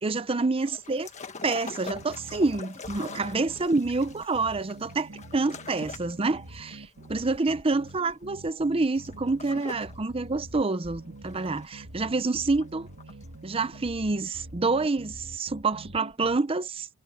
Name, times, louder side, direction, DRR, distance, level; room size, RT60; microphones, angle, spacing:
voice 1, 0.0-1.1 1.4-12.9 13.4-16.9, right 3 dB, 25° right, 0.6 m, -27 dB
sound 1, 0.6-10.0 10.3-12.1 12.5-13.4 13.7-13.8, left 4 dB, 35° left, 1.5 m, -44 dB
sound 2, 1.9-16.4, right 1 dB, 80° right, 2.3 m, -46 dB
head